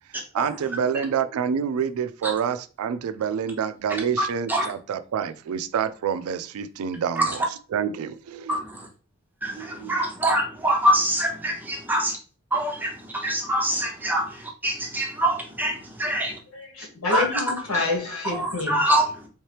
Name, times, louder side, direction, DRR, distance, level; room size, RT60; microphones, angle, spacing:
voice 1, 0.3-7.4 7.7-8.6 9.5-9.9, right 7 dB, 80° right, 13 dB, 0.3 m, -27 dB
voice 2, 3.9-4.7 7.1-7.4 8.5-8.9 9.4-12.1 12.5-16.3 17.1-17.4 18.2-19.3, right 1 dB, 10° right, 2 dB, 0.5 m, -25 dB
voice 3, 16.8-18.8, left 3 dB, 80° left, -1 dB, 1.6 m, -27 dB
3.5 x 2.8 x 3.2 m, 0.38 s
head